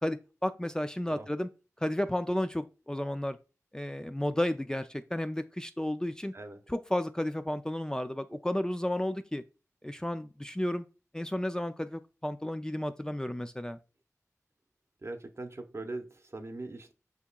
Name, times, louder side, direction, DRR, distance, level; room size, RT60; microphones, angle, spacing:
voice 1, 0.0-1.5 1.8-3.4 3.7-6.3 6.7-9.4 9.8-10.8 11.1-13.8, left 1 dB, 10° left, 0.3 m, -32 dB
voice 2, 15.0-16.9, right 2 dB, 50° right, 0.7 m, -41 dB
6.8 x 2.9 x 2.2 m
wide cardioid pair, 60°, 6 cm